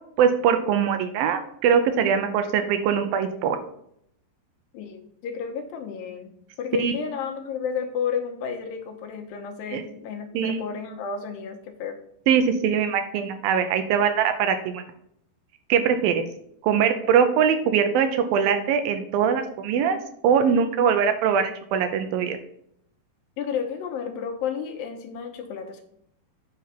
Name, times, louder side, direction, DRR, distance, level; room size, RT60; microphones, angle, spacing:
voice 1, 0.2-3.6 6.8-6.9 9.7-9.8 10.3-10.6 12.3-14.8 15.7-16.2 16.6-20.0 20.2-22.4, right 7 dB, 80° right, 8 dB, 2.2 m, -22 dB
voice 2, 4.7-6.3 6.6-12.0 23.4-25.8, left 6 dB, 75° left, 5 dB, 2.5 m, -32 dB
9.4 x 3.9 x 5.7 m, 0.70 s
omnidirectional pair, 4.5 m